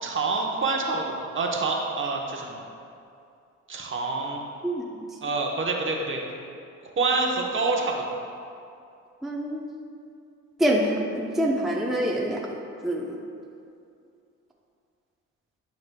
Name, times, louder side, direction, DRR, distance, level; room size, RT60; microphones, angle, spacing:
voice 1, 0.0-2.6 3.7-4.4 5.2-6.2 7.0-8.2, right 3 dB, 40° right, 0 dB, 1.0 m, -27 dB
voice 2, 9.2-9.6 10.6-12.4 12.8-13.2, right 1 dB, ahead, -2 dB, 0.6 m, -25 dB
11.0 x 5.2 x 2.2 m, 2.5 s
cardioid pair, 90°, 30 cm